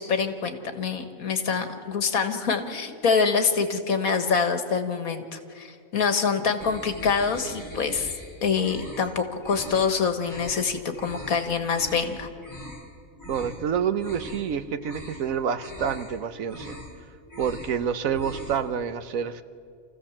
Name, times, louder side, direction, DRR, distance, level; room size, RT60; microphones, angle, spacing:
voice 1, 0.0-8.1 8.4-12.3, left 5 dB, 75° left, 8 dB, 1.9 m, -25 dB
sound 1, 6.6-8.3 8.6-9.1 9.4-9.8 10.2-10.6 10.9-11.3 11.6-12.1 12.4-12.8 13.2-13.6 13.9-14.5 14.8-15.2 15.5-16.1 16.4-16.9 17.2-17.7 18.0-18.6, equal, 10° left, 7.1 m, -41 dB
voice 2, 13.3-16.8 17.4-19.4, right 7 dB, 70° right, 12 dB, 1.2 m, -28 dB
27.5 x 15.5 x 7.3 m, 2.3 s
omnidirectional pair, 1.5 m